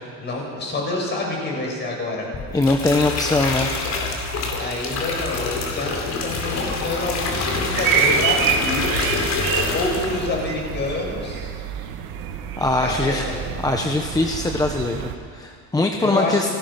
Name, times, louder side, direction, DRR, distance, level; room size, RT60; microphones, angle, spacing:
voice 1, 0.2-2.3 4.4-9.1 9.7-11.5 12.8-13.4 16.0-16.6, left 2 dB, 30° left, -1 dB, 7.0 m, -27 dB
Water flowing over the stone, 2.3-10.3 10.6-11.0, left 3 dB, 45° left, 4.4 m, -26 dB
voice 2, 2.5-3.8 12.6-13.3 13.6-16.5, left 2 dB, 10° left, 4 dB, 0.9 m, -22 dB
sound 1, 7.8-15.2, right 8 dB, 65° right, 2.2 m, -26 dB
30.0 x 19.0 x 5.9 m, 2.2 s
cardioid pair, 145°, 37 cm